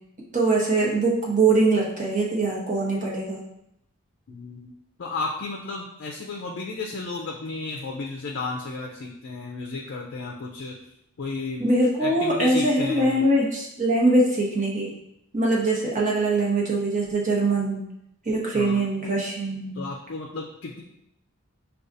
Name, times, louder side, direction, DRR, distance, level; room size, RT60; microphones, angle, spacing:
voice 1, 0.3-3.4 11.6-14.9 15.3-17.8 18.2-19.8, right 2 dB, 35° right, -3 dB, 1.0 m, -22 dB
voice 2, 4.3-4.7 5.0-10.8 11.2-11.7 12.0-13.2 18.5-18.8 19.7-20.8, left 3 dB, 55° left, 0 dB, 0.4 m, -33 dB
6.2 x 2.3 x 2.6 m, 0.80 s
head